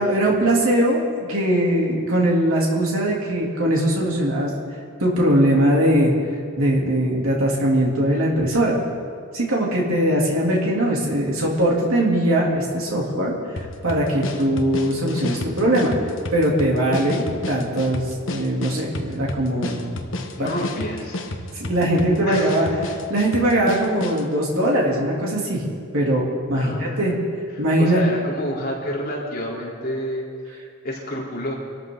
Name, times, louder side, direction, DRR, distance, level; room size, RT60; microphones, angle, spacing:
voice 1, 0.0-4.5 5.0-6.1 6.6-8.8 9.3-15.9 16.3-18.0 18.3-20.5 21.5-22.7 23.1-25.6 25.9-27.1 27.6-28.0, right 1 dB, 85° right, -3 dB, 3.2 m, -21 dB
sound 1, 13.6-24.3, left 1 dB, 65° left, 1.3 m, -32 dB
voice 2, 20.4-21.2 22.3-22.6 26.5-27.2 27.5-30.3 30.8-31.5, equal, 45° left, -4 dB, 3.7 m, -29 dB
24.5 x 13.5 x 4.0 m, 2.1 s
head